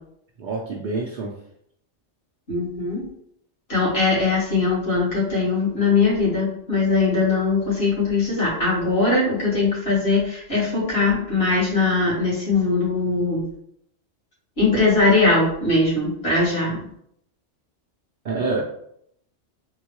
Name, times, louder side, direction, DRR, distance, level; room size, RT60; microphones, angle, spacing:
voice 1, 0.4-1.3 18.2-18.6, right 3 dB, 55° right, -2 dB, 0.5 m, -26 dB
voice 2, 2.5-3.0 3.7-13.4 14.6-16.8, left 3 dB, 60° left, -7 dB, 1.9 m, -21 dB
3.7 x 2.2 x 2.9 m, 0.70 s
omnidirectional pair, 1.2 m